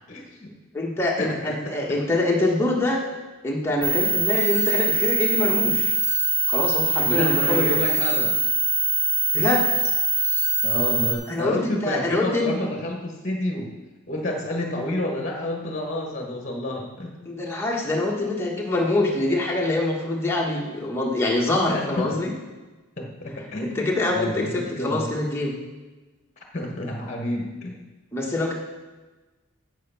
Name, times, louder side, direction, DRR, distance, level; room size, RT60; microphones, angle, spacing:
voice 1, 0.1-0.5 1.2-1.7 7.0-8.4 10.6-13.7 14.1-17.1 21.7-22.1 23.0-25.1 26.5-27.8, left 1 dB, 35° left, 1 dB, 1.2 m, -29 dB
voice 2, 0.7-3.0 3.4-5.9 6.5-7.8 9.3-9.6 11.3-12.5 17.2-22.3 23.6-25.6 28.1-28.5, left 2 dB, 10° left, -2 dB, 1.4 m, -24 dB
sound 1, 3.8-11.1, right 3 dB, 10° right, 1.5 m, -23 dB
7.9 x 7.7 x 5.7 m, 1.2 s
head